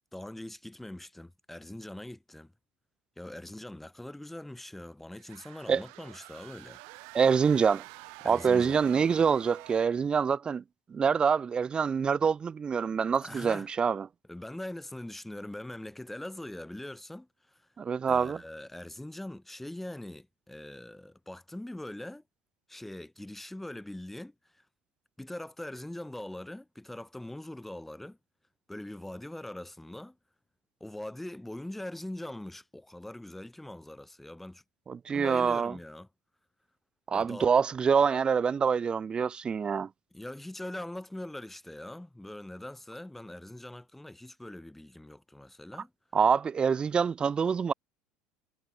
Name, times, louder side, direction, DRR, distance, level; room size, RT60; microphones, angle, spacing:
voice 1, 0.1-2.5 3.2-6.8 8.2-8.9 13.2-13.7 14.3-17.6 18.1-22.2 22.7-24.6 25.2-28.2 28.7-30.2 30.8-34.6 35.1-36.1 37.1-37.5 40.1-45.9, left 1 dB, 5° left, 0.9 m, -42 dB
sound 1, 5.1-10.1, right 40 dB or more, 70° right, 1.8 m, -49 dB
voice 2, 7.1-7.8 8.2-10.6 10.9-14.1 17.8-18.4 34.9-35.7 37.1-39.9 46.1-47.7, right 6 dB, 30° right, 0.4 m, -26 dB
supercardioid pair, 90°, 3 cm